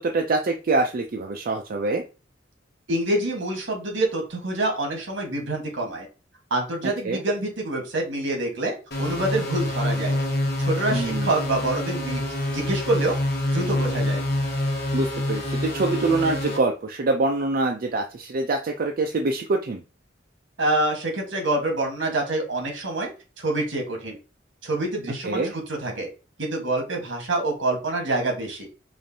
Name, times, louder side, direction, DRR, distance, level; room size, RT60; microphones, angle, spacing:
voice 1, 0.0-2.0 7.0-7.2 10.9-11.3 14.9-19.8 25.2-25.5, right 3 dB, 50° right, 2 dB, 0.4 m, -25 dB
voice 2, 2.9-6.1 6.5-10.2 10.6-12.2 12.5-13.2 13.5-14.2 20.6-23.1 23.4-24.2 24.6-25.4 25.8-26.1 26.4-28.7, right 2 dB, 70° right, 1 dB, 1.4 m, -26 dB
sound 1, 8.9-16.6, left 1 dB, 55° left, 1.1 m, -26 dB
4.9 x 2.5 x 2.7 m, 0.33 s
head